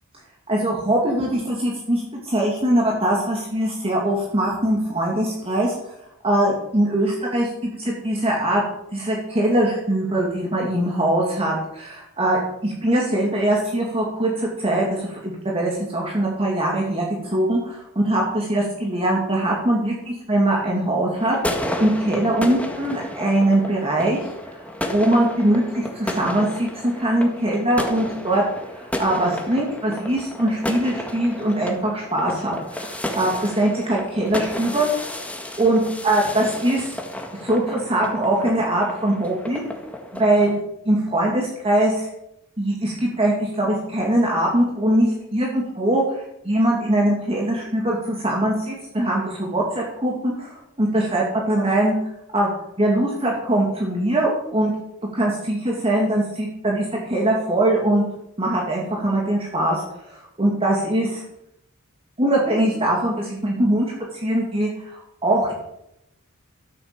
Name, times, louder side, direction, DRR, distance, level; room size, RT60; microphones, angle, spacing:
voice 1, 0.5-5.7 6.2-8.6 8.9-21.4 21.8-24.2 24.5-24.6 24.8-28.4 28.7-35.1 35.6-37.0 37.4-39.6 40.1-40.6 40.8-42.1 42.6-51.9 52.3-52.5 52.8-54.7 55.1-58.0 58.4-59.8 60.1-61.2 62.2-65.5, right 1 dB, 30° right, -2 dB, 2.5 m, -22 dB
sound 1, 21.2-40.6, left 1 dB, 5° left, 1.6 m, -32 dB
13.0 x 8.0 x 6.9 m, 0.81 s
head